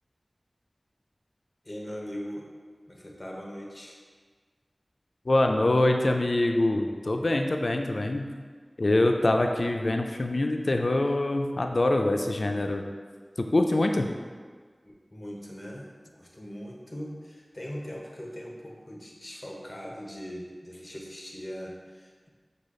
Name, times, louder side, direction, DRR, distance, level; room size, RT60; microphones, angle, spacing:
voice 1, 1.6-2.5 2.9-4.0 14.8-22.3, equal, 30° left, -2 dB, 0.8 m, -40 dB
voice 2, 5.3-8.3 8.8-12.8 13.4-14.1, left 1 dB, 65° left, 4 dB, 0.3 m, -24 dB
5.0 x 2.3 x 3.7 m, 1.6 s
wide cardioid pair, 55°, 0 cm